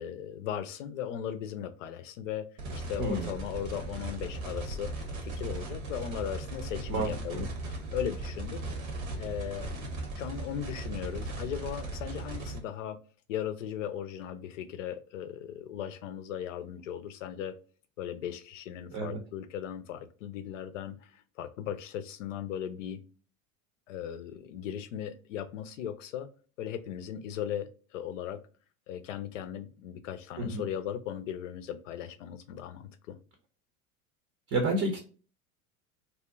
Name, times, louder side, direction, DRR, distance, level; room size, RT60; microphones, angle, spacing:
voice 1, 0.0-2.5 2.7-8.6 9.2-9.8 10.2-13.0 13.3-17.6 18.0-23.0 23.9-26.3 26.6-28.4 28.9-33.2, left 10 dB, 60° left, 9 dB, 0.6 m, -37 dB
sound 1, 2.6-12.6, right 2 dB, 65° right, 1.0 m, -37 dB
voice 2, 3.0-3.3 6.9-7.5 18.9-19.2 30.4-30.6 34.5-35.0, right 2 dB, 30° right, 2 dB, 0.7 m, -30 dB
2.7 x 2.1 x 2.3 m, 0.37 s
figure-of-eight pair, 75°, 43 cm